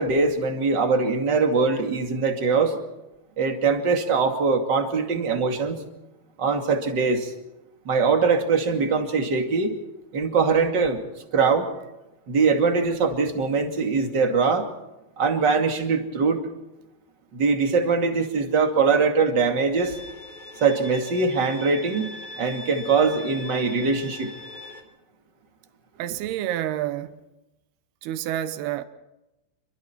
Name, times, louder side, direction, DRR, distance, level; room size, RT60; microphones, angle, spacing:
voice 1, 0.0-2.8 3.4-5.8 6.4-7.3 7.8-9.8 10.1-11.0 11.3-11.7 12.3-14.7 15.2-16.4 17.3-20.0 20.6-24.3, right 4 dB, 30° right, 2.5 m, -22 dB
Bowed string instrument, 19.8-24.8, left 2 dB, 25° left, 3.9 m, -41 dB
voice 2, 26.0-27.2 28.0-28.8, right 12 dB, 85° right, 3.1 m, -29 dB
28.0 x 24.0 x 4.5 m
omnidirectional pair, 4.4 m